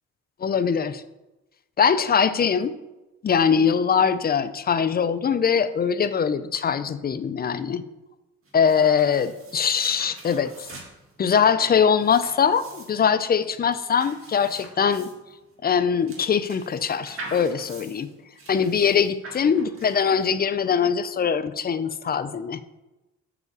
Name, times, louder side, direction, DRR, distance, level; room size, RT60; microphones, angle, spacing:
voice 1, 0.4-1.0 1.8-2.7 3.2-7.8 8.5-10.7 11.2-15.1 15.6-18.1 18.5-22.6, left 7 dB, 30° left, 13 dB, 0.5 m, -22 dB
sound 1, 8.4-20.6, right 2 dB, 45° right, 2.0 m, -44 dB
5.9 x 4.8 x 6.6 m, 1.0 s
cardioid pair, 90°, 30 cm